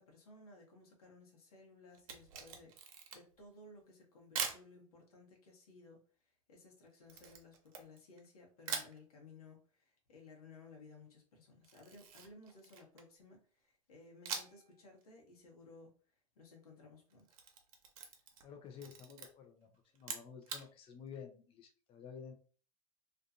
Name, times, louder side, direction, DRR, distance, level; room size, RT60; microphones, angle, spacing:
voice 1, 0.0-6.0 6.5-16.0 16.4-17.2, left 3 dB, 85° left, 1.0 m, -58 dB
Camera, 1.9-3.4 4.3-4.7 7.1-8.3 8.6-9.0 11.6-13.1 14.2-14.7 15.0-15.1 17.1-18.5 18.8-19.3 19.9-20.7, right 6 dB, 70° right, 0.6 m, -43 dB
voice 2, 18.4-19.7 19.9-22.3, left 7 dB, 30° left, 0.5 m, -51 dB
2.5 x 2.3 x 2.6 m
hypercardioid pair, 95°, 19 cm